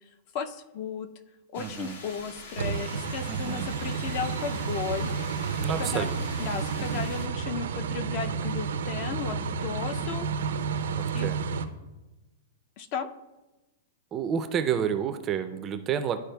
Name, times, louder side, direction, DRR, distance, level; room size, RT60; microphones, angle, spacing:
voice 1, 0.3-1.1 1.5-5.1 5.8-6.1 6.4-10.3 11.1-11.3 12.8-13.1, left 6 dB, 40° left, 11 dB, 0.4 m, -34 dB
sound 1, 1.5-7.3, left 3 dB, 75° left, 1.1 m, -45 dB
voice 2, 1.6-2.0 3.3-3.7 5.6-6.5 6.8-7.1 11.0-11.4 14.1-16.2, right 8 dB, 20° right, 9 dB, 0.4 m, -30 dB
sound 2, 2.6-11.7, right 5 dB, 85° right, 0.5 m, -31 dB
12.0 x 4.8 x 2.2 m, 1.1 s
supercardioid pair, 155°, 0 cm